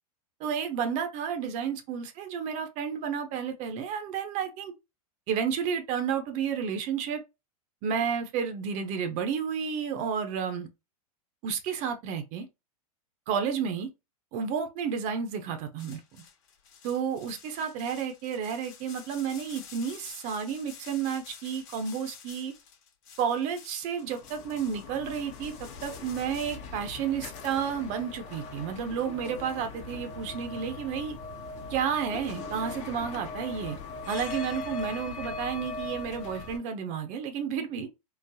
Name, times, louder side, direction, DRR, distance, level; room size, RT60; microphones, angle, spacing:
voice 1, 0.4-4.7 5.3-7.2 7.8-10.7 11.4-12.5 13.3-13.9 14.3-16.2 16.8-22.5 23.2-31.2 31.7-33.8 34.1-37.9, right 7 dB, 40° right, 0.6 m, -31 dB
sound 1, 15.8-26.6, left 7 dB, 55° left, 1.1 m, -50 dB
sound 2, 24.0-36.6, left 3 dB, 35° left, 0.8 m, -40 dB
3.8 x 2.0 x 2.7 m
hypercardioid pair, 120°, 19 cm